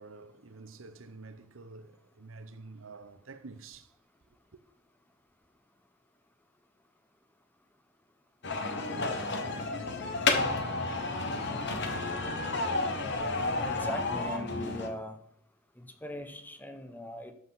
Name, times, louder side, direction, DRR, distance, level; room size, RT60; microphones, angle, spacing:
voice 1, 0.0-3.9, right 3 dB, 80° right, 0.9 m, -48 dB
sound 1, 8.4-14.9, left 3 dB, 60° left, 1.4 m, -31 dB
voice 2, 13.6-15.2 15.8-17.3, left 1 dB, 10° left, 1.0 m, -40 dB
12.5 x 7.8 x 4.1 m
head